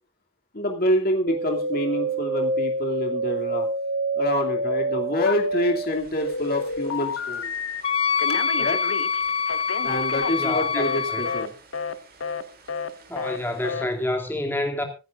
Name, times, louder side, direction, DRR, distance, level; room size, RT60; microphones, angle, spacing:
voice 1, 0.5-3.7 4.1-7.5 8.6-8.8 9.8-11.5, left 1 dB, 45° left, 2.6 m, -26 dB
sound 1, 1.3-10.7 10.9-11.8 12.1-13.1 13.5-13.6, right 2 dB, 45° right, 3.0 m, -29 dB
Telephone, 5.3-5.9 6.2-7.8 8.2-11.0 11.3-11.5 11.7-11.9 12.2-12.4 12.7-12.9 13.2-13.4 13.6-13.9, left 5 dB, 90° left, 1.2 m, -31 dB
Wind instrument woodwind instrument, 7.8-11.5, left 6 dB, 30° left, 0.7 m, -25 dB
voice 2, 10.3-10.8 11.1-11.2 13.1-14.8, left 1 dB, 10° left, 2.5 m, -28 dB
25.0 x 10.5 x 2.5 m
head